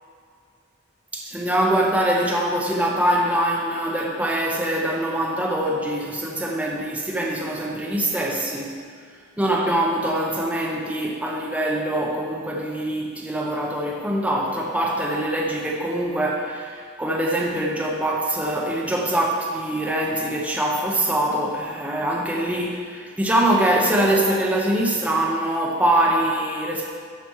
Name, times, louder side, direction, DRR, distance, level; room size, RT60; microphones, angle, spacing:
voice 1, 1.1-8.8 9.4-26.9, right 1 dB, 5° right, -2 dB, 0.8 m, -23 dB
13.0 x 5.0 x 4.8 m, 2.1 s
head